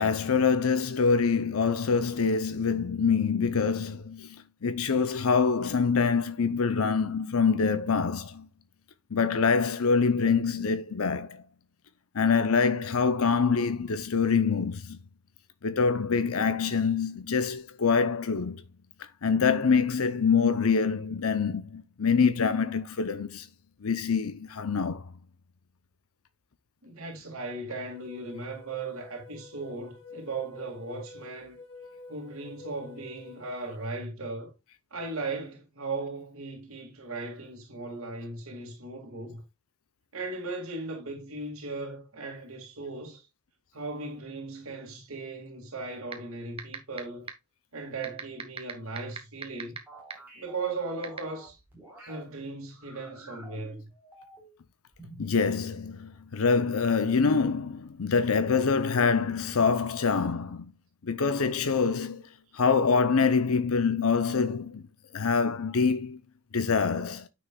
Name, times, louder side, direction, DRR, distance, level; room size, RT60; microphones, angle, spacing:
voice 1, 0.0-8.5 9.1-11.4 12.1-15.0 15.6-18.6 19.2-23.5 23.8-25.0 55.2-60.7 61.0-62.2 62.5-64.8 65.1-66.2 66.5-67.3, left 5 dB, 75° left, 0.6 m, -25 dB
voice 2, 26.8-31.6 32.1-34.5 34.9-39.4 40.1-43.2 43.7-47.3 47.7-49.8 50.4-51.6 52.1-53.9 59.5-59.8, right 3 dB, 70° right, 2.2 m, -37 dB
sound 1, 27.9-33.9, left 3 dB, 55° left, 2.8 m, -49 dB
sound 2, 46.1-46.2 46.6-47.0 47.3-47.4 48.0-49.8 50.1-50.2 51.0-51.2, right 5 dB, 25° right, 1.4 m, -34 dB
sound 3, 49.9-52.2 52.7-54.6 54.9-55.5, right 1 dB, 10° right, 4.1 m, -50 dB
9.7 x 6.3 x 2.3 m
head